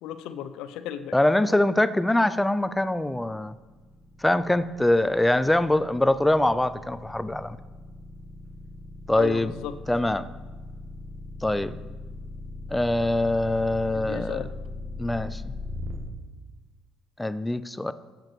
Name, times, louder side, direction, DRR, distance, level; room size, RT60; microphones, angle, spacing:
voice 1, 0.0-1.1 9.1-9.7 13.9-14.5, left 10 dB, 85° left, 11 dB, 0.5 m, -35 dB
voice 2, 1.1-3.5 4.2-7.6 9.1-9.5 9.9-10.3 11.4-11.8 12.7-14.4 15.0-15.5 17.2-17.9, left 1 dB, 5° left, 14 dB, 0.3 m, -23 dB
sound 1, 2.7-16.0, left 2 dB, 30° right, 1.3 m, -39 dB
7.7 x 7.6 x 4.5 m, 1.3 s
cardioid pair, 140°, 0 cm